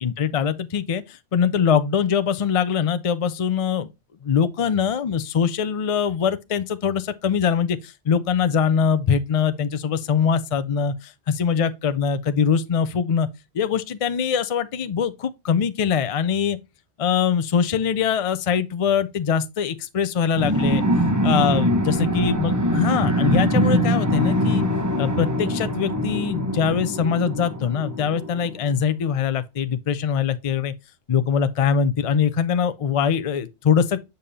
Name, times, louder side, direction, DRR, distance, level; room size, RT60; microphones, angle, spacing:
voice 1, 0.0-3.9 4.2-13.3 13.5-16.6 17.0-20.8 21.2-24.6 25.0-30.7 31.1-34.0, left 7 dB, 50° left, 0.4 m, -22 dB
sound 1, 20.4-28.5, equal, 20° right, 0.8 m, -22 dB
6.8 x 5.1 x 2.8 m
omnidirectional pair, 1.1 m